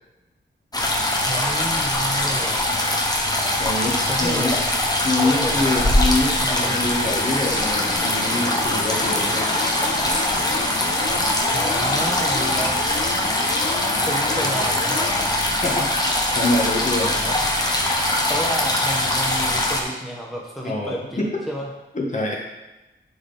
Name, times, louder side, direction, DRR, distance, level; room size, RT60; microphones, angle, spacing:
sound 1, 0.7-19.8, left 1 dB, 20° left, 1.0 m, -22 dB
voice 1, 1.3-2.7 4.1-4.6 5.2-6.0 6.4-6.8 11.5-12.8 14.1-15.0 18.3-21.2 21.5-21.7, right 1 dB, ahead, -2 dB, 1.0 m, -30 dB
voice 2, 3.6-4.5 5.0-9.5 15.6-15.9 16.3-17.3 20.6-21.3 21.9-22.4, left 2 dB, 40° left, -2 dB, 1.5 m, -25 dB
sound 2, 7.0-15.3, left 3 dB, 85° left, 1.2 m, -31 dB
9.7 x 3.9 x 4.1 m, 1.0 s
wide cardioid pair, 130°, 20 cm